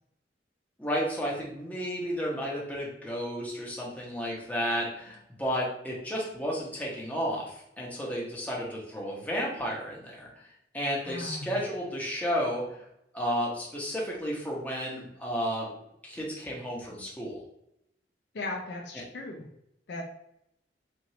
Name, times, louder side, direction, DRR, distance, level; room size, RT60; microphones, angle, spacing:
voice 1, 0.8-10.4 10.7-12.9 13.1-15.7 16.0-17.4, equal, 10° left, -4 dB, 1.0 m, -32 dB
voice 2, 11.0-11.6 18.3-19.5 19.9-20.0, left 2 dB, 65° left, 1 dB, 0.6 m, -37 dB
4.7 x 2.5 x 2.8 m, 0.78 s
head